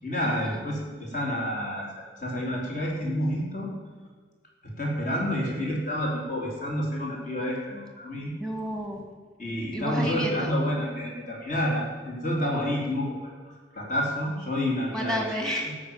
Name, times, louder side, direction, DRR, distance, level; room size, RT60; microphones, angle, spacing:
voice 1, 0.0-3.7 4.6-8.3 9.4-13.3 13.7-15.3, equal, 40° left, -2 dB, 3.3 m, -29 dB
voice 2, 8.4-9.1 9.7-10.6 14.9-15.7, equal, 5° left, 1 dB, 2.0 m, -31 dB
13.5 x 6.2 x 8.9 m, 1.5 s
head